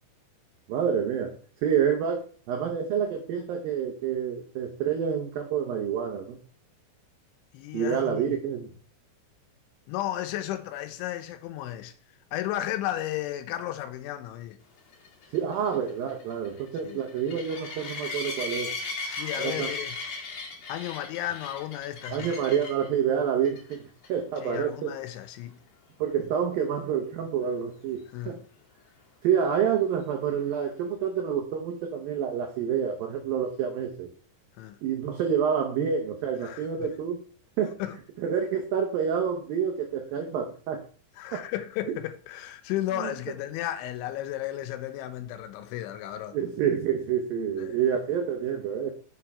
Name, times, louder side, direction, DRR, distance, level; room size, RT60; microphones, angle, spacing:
voice 1, 0.7-6.4 7.7-8.7 15.3-18.7 19.4-19.7 22.1-23.8 24.1-24.9 26.0-28.4 29.2-34.1 34.8-37.2 37.6-37.8 38.2-40.8 41.3-41.4 41.9-42.0 43.0-43.1 46.3-48.9, right 8 dB, 85° right, 2.0 m, -28 dB
voice 2, 7.5-8.4 9.9-11.9 12.3-14.6 16.8-17.0 19.0-20.0 20.7-22.3 24.4-25.6 28.1-28.4 34.6-34.8 36.4-36.9 37.8-38.0 41.2-46.4 47.6-47.8, left 13 dB, 85° left, 3.1 m, -34 dB
sound 1, 14.9-22.9 23.4-23.7 24.0-24.1 24.5-24.6 28.2-28.3, left 3 dB, 45° left, 2.6 m, -37 dB
7.0 x 6.0 x 4.9 m
omnidirectional pair, 5.4 m